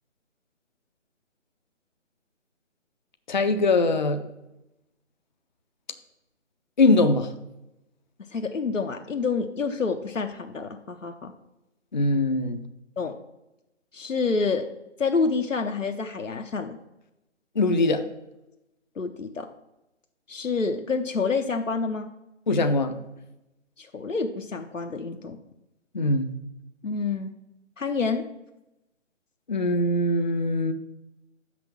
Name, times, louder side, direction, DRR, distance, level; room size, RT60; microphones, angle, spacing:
voice 1, 3.3-4.2 6.8-7.3 11.9-12.6 17.6-18.1 22.5-23.0 25.9-26.4 29.5-30.7, left 2 dB, 40° left, 8 dB, 0.5 m, -22 dB
voice 2, 8.3-11.3 13.0-13.1 13.9-14.7 15.0-16.8 19.0-19.5 20.3-22.1 23.8-25.4 26.8-27.3 27.8-28.2, left 4 dB, 80° left, 4 dB, 0.9 m, -28 dB
6.2 x 5.9 x 7.1 m, 0.93 s
figure-of-eight pair, 145°, 38 cm